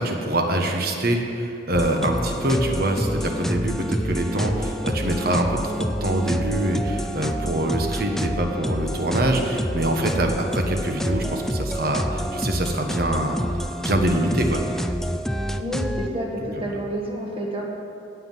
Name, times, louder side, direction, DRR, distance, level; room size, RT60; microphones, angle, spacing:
voice 1, 0.0-13.4 13.8-14.6 16.6-16.8, right 1 dB, 50° right, 3 dB, 1.3 m, -24 dB
sound 1, 1.7-16.1, equal, ahead, 0.3 m, -28 dB
voice 2, 15.6-17.6, right 1 dB, 30° right, -1 dB, 1.7 m, -29 dB
17.0 x 5.9 x 7.5 m, 2.8 s
head